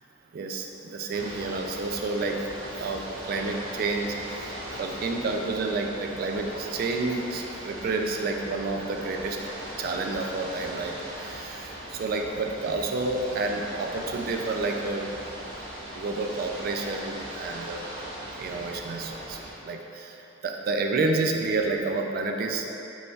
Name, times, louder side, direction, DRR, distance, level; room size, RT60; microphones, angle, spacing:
voice 1, 0.3-2.4 2.8-4.5 4.8-9.4 9.8-15.1 15.9-17.8 18.4-20.2 20.4-22.6, right 3 dB, 50° right, 3 dB, 0.3 m, -30 dB
Ocean / Boat Water vehicle, 1.1-19.5, right 1 dB, 85° right, 0.8 m, -39 dB
5.1 x 3.2 x 2.3 m, 3.0 s
head